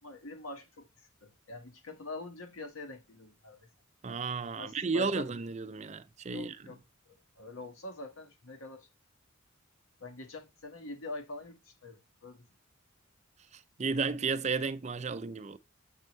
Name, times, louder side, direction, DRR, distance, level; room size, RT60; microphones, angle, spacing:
voice 1, 0.0-3.7 4.6-5.3 6.3-6.8 7.1-8.9 10.0-12.5, left 2 dB, 80° left, 1.8 m, -45 dB
voice 2, 4.0-6.6 13.5-15.6, right 4 dB, 35° right, 0.5 m, -33 dB
7.3 x 5.2 x 3.3 m
head